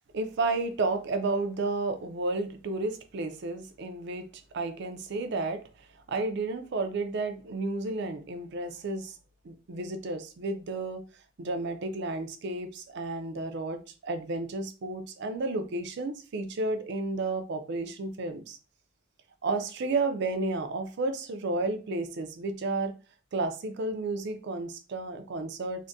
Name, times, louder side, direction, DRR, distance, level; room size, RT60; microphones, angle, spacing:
voice 1, 0.1-4.3 4.5-5.6 6.1-9.2 9.4-11.0 11.4-18.6 19.4-22.9 23.3-25.9, right 3 dB, 55° right, 8 dB, 0.4 m, -32 dB
3.5 x 2.1 x 2.6 m, 0.34 s
head